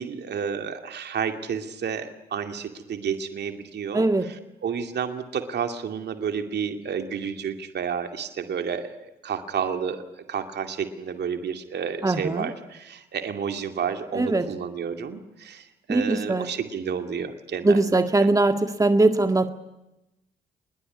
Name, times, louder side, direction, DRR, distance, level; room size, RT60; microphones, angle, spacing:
voice 1, 0.0-4.4 4.6-10.0 10.3-18.3, right 7 dB, 60° right, 6 dB, 2.4 m, -31 dB
voice 2, 3.9-4.3 12.0-12.5 14.1-14.5 15.9-16.5 17.6-19.5, right 2 dB, 15° right, 7 dB, 1.9 m, -21 dB
25.5 x 21.0 x 9.8 m, 0.94 s
hypercardioid pair, 45°, 20 cm